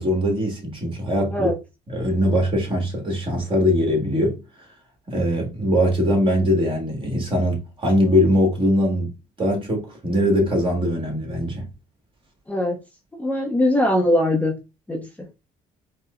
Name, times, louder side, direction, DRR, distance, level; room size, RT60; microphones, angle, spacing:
voice 1, 0.0-1.5 1.9-4.4 5.1-9.1 9.4-11.7, equal, 30° right, 1.5 m, -21 dB
voice 2, 13.1-14.6 14.9-15.3, left 1 dB, 10° left, 0.6 m, -21 dB
4.6 x 2.0 x 2.4 m
cardioid pair, 110°, 17 cm